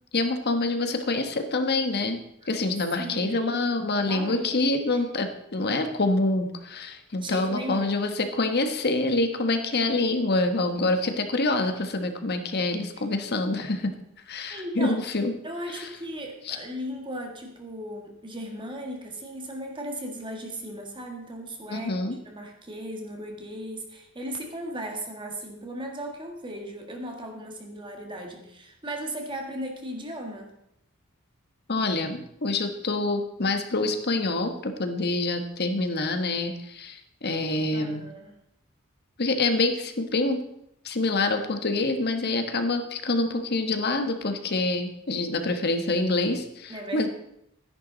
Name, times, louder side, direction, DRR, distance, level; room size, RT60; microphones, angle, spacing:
voice 1, 0.1-2.2 2.5-13.9 14.3-15.3 15.7-15.9 16.4-16.6 21.7-22.1 31.7-38.0 39.2-40.4 40.8-47.1, left 2 dB, 50° left, 7 dB, 1.3 m, -26 dB
voice 2, 3.0-4.5 4.9-5.0 7.1-8.0 14.5-15.0 15.4-22.0 22.3-30.5 37.7-38.3 46.7-47.1, equal, 25° right, 2 dB, 1.7 m, -37 dB
13.0 x 10.5 x 4.0 m, 0.76 s
head